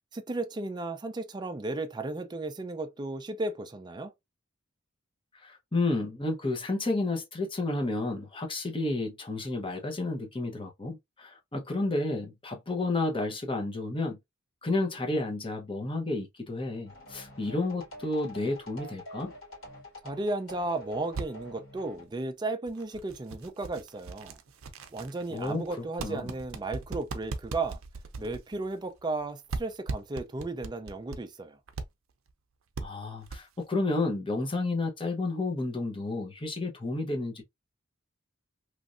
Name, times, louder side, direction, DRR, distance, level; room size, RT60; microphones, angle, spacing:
voice 1, 0.1-4.1 20.0-24.4 24.9-27.8 28.2-31.6, right 2 dB, 20° right, 0.4 m, -34 dB
voice 2, 5.4-14.2 14.6-19.3 25.3-26.3 32.8-37.4, left 2 dB, 25° left, 0.8 m, -31 dB
sound 1, 16.9-22.1, equal, 75° left, 2.0 m, -47 dB
sound 2, 21.0-21.3 21.9-22.1 22.7-29.2 29.5-31.2 31.7-31.9 32.3-32.4 32.7-32.9 33.2-33.6, right 3 dB, 70° right, 0.5 m, -38 dB
3.1 x 2.6 x 2.4 m
head